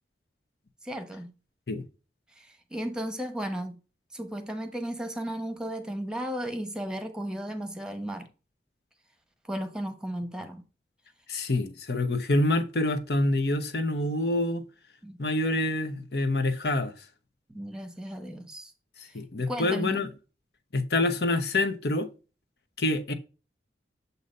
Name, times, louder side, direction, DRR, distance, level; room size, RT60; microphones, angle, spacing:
voice 1, 0.8-1.3 2.4-3.8 4.1-8.3 9.5-10.6 15.0-15.2 17.5-18.7 19.5-20.0, right 1 dB, 5° right, 1.0 m, -35 dB
voice 2, 11.3-14.6 15.2-16.9 19.1-20.1 20.7-22.1 22.8-23.1, left 2 dB, 65° left, 0.9 m, -26 dB
8.0 x 2.8 x 5.2 m
head